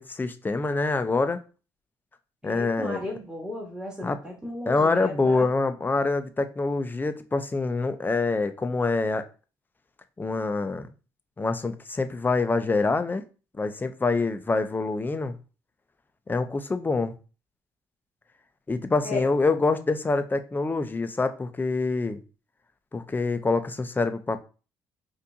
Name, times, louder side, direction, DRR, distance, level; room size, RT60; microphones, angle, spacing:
voice 1, 0.0-1.4 2.4-3.0 4.0-4.2 4.7-9.2 10.2-10.9 11.4-13.2 13.6-15.3 16.3-17.1 18.7-22.2 22.9-24.4, left 3 dB, 20° left, 9 dB, 0.6 m, -25 dB
voice 2, 2.4-5.5 19.0-19.2, left 1 dB, 10° right, -2 dB, 1.5 m, -35 dB
4.2 x 2.6 x 2.7 m, 0.35 s
supercardioid pair, 60°, 9 cm